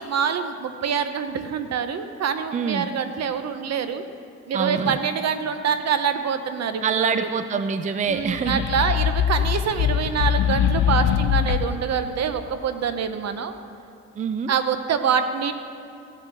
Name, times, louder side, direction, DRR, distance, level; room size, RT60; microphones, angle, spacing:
voice 1, 0.0-4.0 4.5-7.3 8.1-13.5 14.5-15.5, right 7 dB, 60° right, 9 dB, 0.9 m, -25 dB
voice 2, 2.5-2.9 4.5-5.0 6.8-8.6 14.2-14.5, right 6 dB, 25° right, 10 dB, 0.5 m, -25 dB
sound 1, 8.2-11.9, left 9 dB, 70° left, 0.6 m, -22 dB
15.5 x 6.1 x 6.6 m, 2.7 s
cardioid pair, 90°, 30 cm